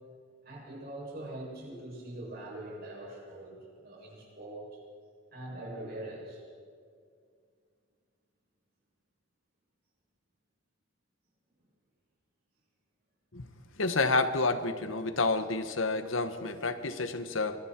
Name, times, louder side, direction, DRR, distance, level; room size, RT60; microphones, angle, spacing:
voice 1, 0.4-4.8 5.3-6.4, right 1 dB, 50° right, -3 dB, 7.2 m, -43 dB
voice 2, 13.8-17.6, left 3 dB, 75° left, 10 dB, 1.3 m, -29 dB
25.0 x 22.5 x 4.6 m, 2.1 s
head